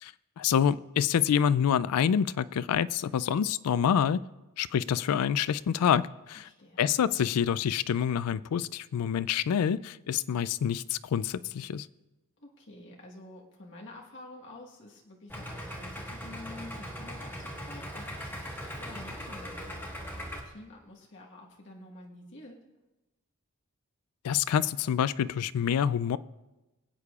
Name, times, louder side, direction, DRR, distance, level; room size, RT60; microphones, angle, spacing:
voice 1, 0.0-4.2 4.6-6.5 6.8-11.9 24.2-26.2, left 8 dB, 85° left, 17 dB, 0.3 m, -27 dB
voice 2, 6.3-6.8 12.4-22.6, left 2 dB, 55° left, -2 dB, 1.4 m, -49 dB
Idling, 15.3-20.4, equal, 10° left, 1.4 m, -40 dB
23.5 x 8.3 x 2.4 m, 1.1 s
head